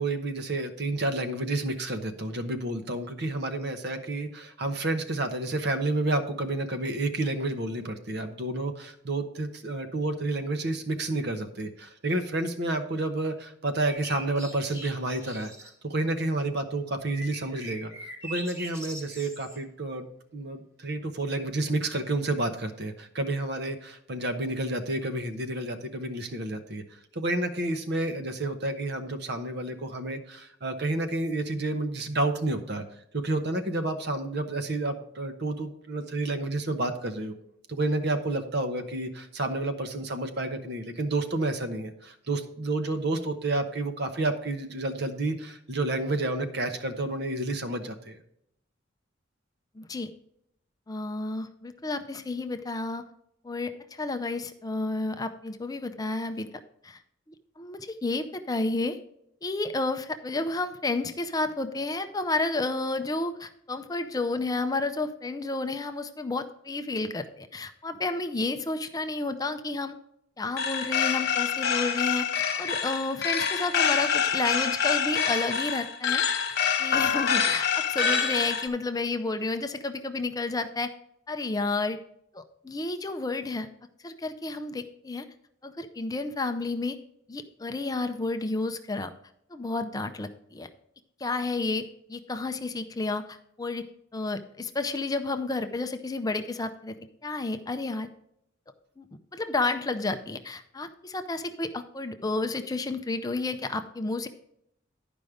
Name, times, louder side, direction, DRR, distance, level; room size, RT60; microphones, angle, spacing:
voice 1, 0.0-17.9 18.2-20.0 20.3-32.8 33.1-37.3 37.7-48.2, right 2 dB, 55° right, 7 dB, 1.0 m, -30 dB
sound 1, 13.9-15.7 17.0-19.6 21.3-21.4, right 1 dB, 15° right, 1.2 m, -42 dB
voice 2, 49.8-50.1 50.9-53.0 53.4-56.5 56.8-57.0 57.6-59.0 59.4-70.0 70.4-72.3 72.6-76.2 76.8-80.9 81.3-82.0 82.3-83.7 84.0-85.3 85.6-87.0 87.3-89.1 89.5-90.7 91.2-93.8 94.1-97.0 97.2-98.1 99.0-99.1 99.3-104.3, left 3 dB, 20° left, 8 dB, 0.5 m, -31 dB
sound 2, 70.6-78.7, left 7 dB, 55° left, 1.3 m, -26 dB
11.0 x 5.2 x 4.9 m, 0.74 s
head